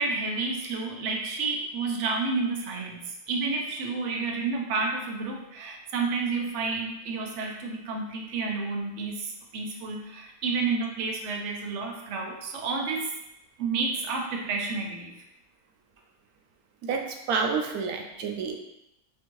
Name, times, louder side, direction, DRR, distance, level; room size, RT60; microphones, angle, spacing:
voice 1, 0.0-13.1 13.6-15.1, right 4 dB, 60° right, 1 dB, 0.9 m, -30 dB
voice 2, 16.8-18.6, right 5 dB, 85° right, 3 dB, 1.1 m, -29 dB
4.3 x 2.7 x 3.0 m, 0.86 s
omnidirectional pair, 1.5 m